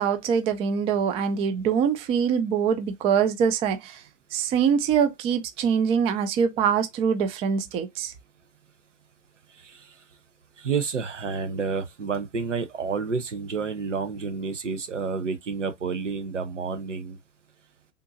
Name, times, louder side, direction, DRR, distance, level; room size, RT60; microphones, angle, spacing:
voice 1, 0.0-4.0 4.3-8.1, right 7 dB, 15° right, 0.3 m, -24 dB
voice 2, 9.6-9.9 10.6-17.2, right 5 dB, 85° right, 0.8 m, -30 dB
3.7 x 2.6 x 2.5 m
figure-of-eight pair, 100°, 36 cm